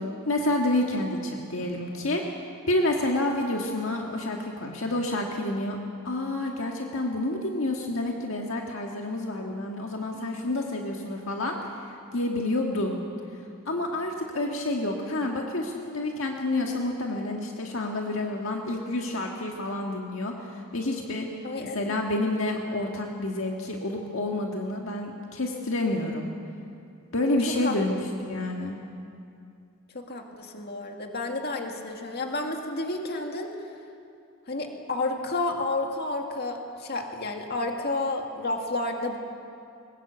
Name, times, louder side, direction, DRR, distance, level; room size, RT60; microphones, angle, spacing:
voice 1, 0.3-2.2 2.7-5.8 6.0-11.6 12.1-13.0 13.7-21.3 21.6-26.3 27.1-28.8, left 1 dB, 60° left, 1 dB, 1.8 m, -29 dB
voice 2, 21.4-22.3 27.6-27.8 29.9-33.5 34.5-39.2, left 2 dB, 45° left, 3 dB, 2.1 m, -31 dB
22.0 x 20.5 x 8.2 m, 2.5 s
head